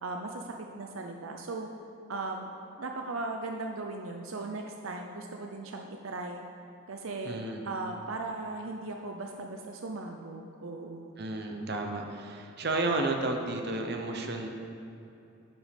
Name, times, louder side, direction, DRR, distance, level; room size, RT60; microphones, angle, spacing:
voice 1, 0.0-1.7 2.1-2.5 2.8-6.4 6.9-7.4 7.6-11.1, right 3 dB, 75° right, 3 dB, 0.6 m, -38 dB
voice 2, 7.2-7.7 11.2-14.5, right 2 dB, 50° right, 3 dB, 0.9 m, -32 dB
10.5 x 6.1 x 5.2 m, 2.9 s
head